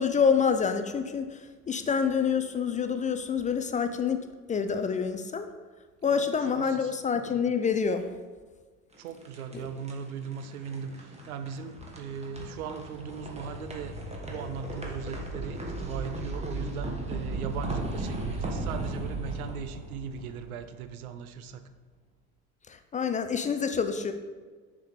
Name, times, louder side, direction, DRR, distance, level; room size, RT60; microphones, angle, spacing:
voice 1, 0.0-4.2 4.5-5.5 6.0-8.1 9.5-9.7 22.7-24.1, left 6 dB, 20° left, 8 dB, 0.3 m, -27 dB
voice 2, 6.1-6.9 9.0-14.0 14.2-21.6, right 6 dB, 85° right, 10 dB, 0.6 m, -38 dB
sound 1, 8.9-21.0, right 2 dB, 15° right, 1.4 m, -37 dB
6.6 x 4.8 x 4.1 m, 1.5 s
hypercardioid pair, 75°, 42 cm